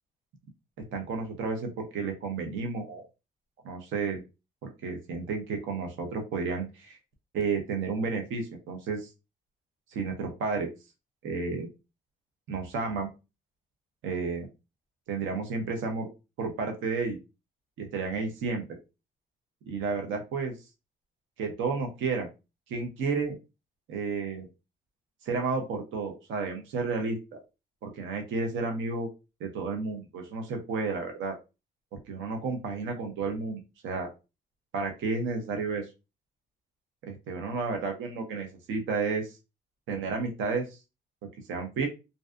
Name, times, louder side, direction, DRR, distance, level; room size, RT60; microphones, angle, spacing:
voice 1, 0.9-3.1 3.6-4.2 4.6-7.0 7.3-9.1 9.9-10.7 11.2-11.7 12.5-13.1 14.0-14.5 15.1-16.1 16.4-17.2 17.8-18.8 19.7-20.5 21.4-22.3 22.7-23.4 23.9-24.5 25.2-27.4 27.8-29.1 29.4-31.4 31.9-34.1 34.7-35.8 37.0-39.4 39.9-40.8 41.5-41.9, right 4 dB, 80° right, 3 dB, 0.7 m, -32 dB
2.6 x 2.3 x 2.2 m, 0.28 s
cardioid pair, 90°, 20 cm